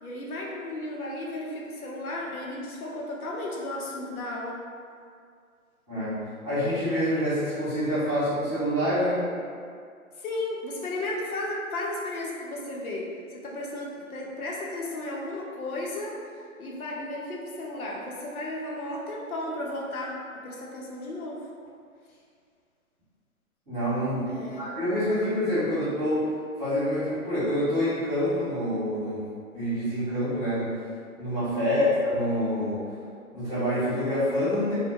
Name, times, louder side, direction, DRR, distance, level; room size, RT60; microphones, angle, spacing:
voice 1, 0.0-4.6 10.2-16.2 16.6-20.2 20.4-21.4 24.3-24.7 25.7-25.9 31.6-31.8, left 1 dB, 80° left, -3 dB, 0.7 m, -34 dB
voice 2, 5.9-9.3 23.7-26.3 26.6-29.2 29.5-30.8 31.2-32.9 33.3-34.7, equal, 10° right, -23 dB, 0.4 m, -27 dB
2.2 x 2.0 x 2.7 m, 2.2 s
figure-of-eight pair, 135°, 43 cm